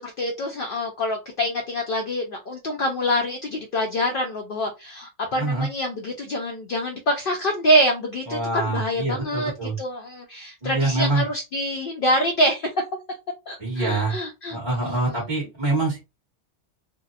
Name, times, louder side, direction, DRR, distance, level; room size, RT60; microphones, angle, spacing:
voice 1, 0.0-12.7 13.5-14.6 14.8-15.2, equal, 60° left, 2 dB, 0.6 m, -25 dB
voice 2, 5.3-5.7 8.3-9.7 10.6-11.2 13.6-14.1 14.5-16.0, right 2 dB, 25° right, -4 dB, 1.1 m, -25 dB
2.7 x 2.0 x 2.4 m, 0.25 s
omnidirectional pair, 1.2 m